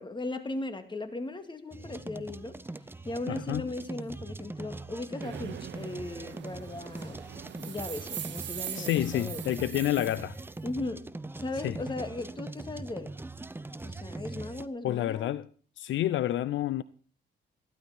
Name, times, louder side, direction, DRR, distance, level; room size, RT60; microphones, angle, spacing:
voice 1, 0.0-2.6 3.1-7.2 7.6-9.4 10.6-13.1 13.8-15.4, left 2 dB, 25° left, 2.2 m, -37 dB
sound 1, 1.7-14.7, right 2 dB, 10° right, 0.7 m, -41 dB
voice 2, 3.3-3.6 8.8-10.4 11.6-11.8 14.8-15.5 15.8-16.8, left 13 dB, 75° left, 0.6 m, -29 dB
sound 2, 5.2-10.6, right 11 dB, 65° right, 1.1 m, -42 dB
15.0 x 12.0 x 4.3 m
cardioid pair, 90°, 20 cm